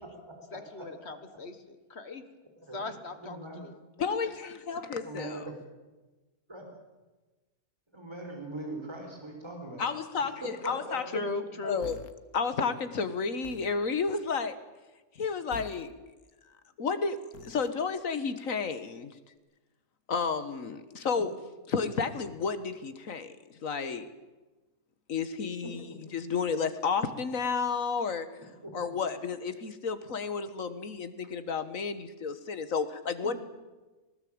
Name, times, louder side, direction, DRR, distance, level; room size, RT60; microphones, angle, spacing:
voice 1, 0.5-2.2 2.7-3.8 11.1-11.9, left 3 dB, 45° left, 10 dB, 1.8 m, -38 dB
voice 2, 3.2-3.7 5.0-5.5 6.5-6.6 7.9-9.8 10.4-11.0 25.6-26.0 28.6-28.9 33.2-33.3, right 1 dB, 20° right, 2 dB, 4.1 m, -41 dB
voice 3, 4.0-5.5 9.8-11.2 11.6-12.0 12.3-14.6 15.2-15.9 16.8-19.1 20.1-21.3 21.7-23.3 23.6-24.1 25.1-28.3 28.7-33.3, left 5 dB, 65° left, 12 dB, 1.8 m, -31 dB
sound 1, 11.8-12.1 13.4-13.8 15.5-15.9 17.3-17.7, left 7 dB, 80° left, 1.5 m, -46 dB
20.0 x 19.0 x 8.7 m, 1.2 s
omnidirectional pair, 1.5 m